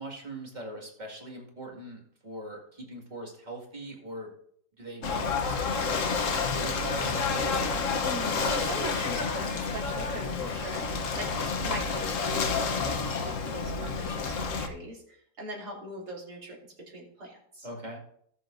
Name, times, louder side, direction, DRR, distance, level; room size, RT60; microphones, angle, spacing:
voice 1, 0.0-4.3 4.8-7.1 17.6-18.0, right 1 dB, 25° right, -1 dB, 2.1 m, -41 dB
Ocean / Boat Water vehicle, 5.0-14.7, left 4 dB, 55° left, 1.2 m, -29 dB
voice 2, 8.0-16.6 16.9-17.7, right 1 dB, 70° right, -3 dB, 3.5 m, -41 dB
18.5 x 6.9 x 2.6 m, 0.68 s
omnidirectional pair, 1.8 m